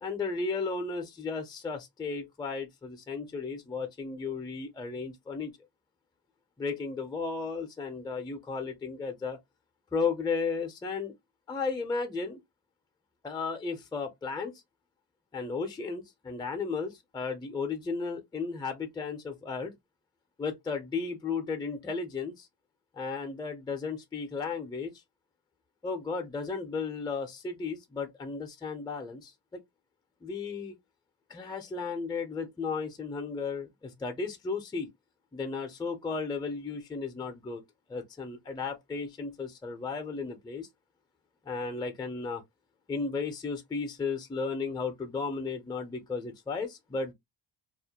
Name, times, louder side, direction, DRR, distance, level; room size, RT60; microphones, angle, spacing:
voice 1, 0.0-5.5 6.6-9.4 9.9-11.1 11.5-12.4 13.2-14.5 15.3-19.7 20.4-22.5 23.0-24.9 25.8-29.3 30.2-30.7 31.3-34.9 35.3-37.6 37.9-40.7 41.4-42.4 42.9-47.1, left 4 dB, 10° left, 0.4 m, -34 dB
2.3 x 2.1 x 2.7 m
cardioid pair, 120°, 46 cm